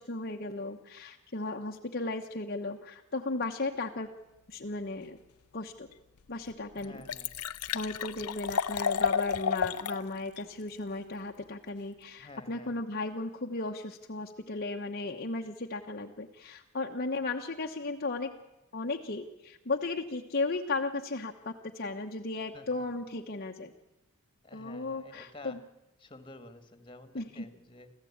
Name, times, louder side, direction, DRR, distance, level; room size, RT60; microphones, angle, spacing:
voice 1, 0.0-4.1 4.5-5.2 5.5-5.9 6.3-7.0 7.7-18.3 18.7-23.7 24.5-25.6 27.1-27.5, left 3 dB, 45° left, 2 dB, 1.1 m, -35 dB
Liquid, 5.9-6.0 6.5-6.6 6.8-10.0 10.4-10.5, left 7 dB, 85° left, 0.7 m, -31 dB
voice 2, 6.7-7.3 12.2-12.7 22.5-23.0 24.4-25.6 26.0-27.9, left 2 dB, 25° left, 9 dB, 1.9 m, -50 dB
26.0 x 15.0 x 8.7 m, 0.98 s
head